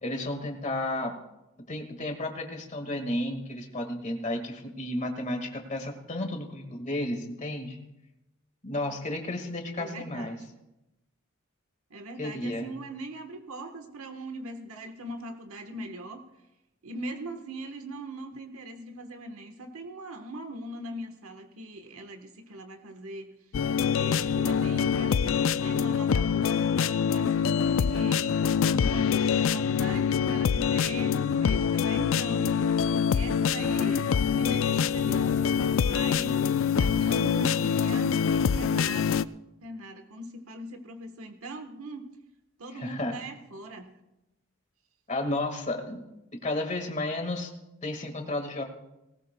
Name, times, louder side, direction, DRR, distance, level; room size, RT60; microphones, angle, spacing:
voice 1, 0.0-1.1 1.7-7.8 8.6-10.4 12.2-12.8 42.7-43.1 45.1-46.0 46.4-47.5 47.8-48.6, left 1 dB, 35° left, 4 dB, 1.8 m, -32 dB
voice 2, 9.8-10.4 11.9-16.2 16.8-23.3 23.9-28.4 28.8-32.7 33.1-35.4 35.6-36.4 36.8-42.1 42.6-43.9, right 1 dB, 85° right, 6 dB, 1.2 m, -40 dB
sound 1, 23.5-39.2, left 7 dB, 65° left, 0.3 m, -25 dB
19.0 x 18.0 x 2.2 m, 0.94 s
head